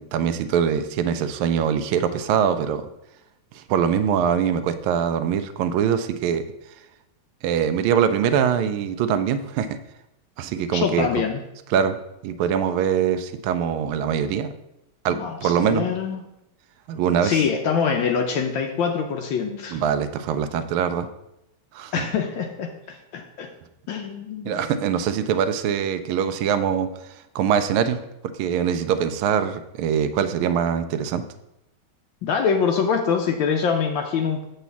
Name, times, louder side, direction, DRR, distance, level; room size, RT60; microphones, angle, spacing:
voice 1, 0.0-2.9 3.5-6.4 7.4-9.7 10.4-11.1 11.7-12.0 12.2-14.5 15.0-15.9 16.9-17.4 19.7-21.1 21.7-22.1 24.4-26.9 27.3-28.0 28.4-31.2, right 8 dB, 80° right, 9 dB, 1.4 m, -23 dB
voice 2, 10.7-11.4 15.1-16.2 17.2-19.8 21.9-23.5 23.9-24.6 32.2-34.4, left 6 dB, 70° left, 4 dB, 1.4 m, -24 dB
7.7 x 4.1 x 6.9 m, 0.86 s
omnidirectional pair, 2.3 m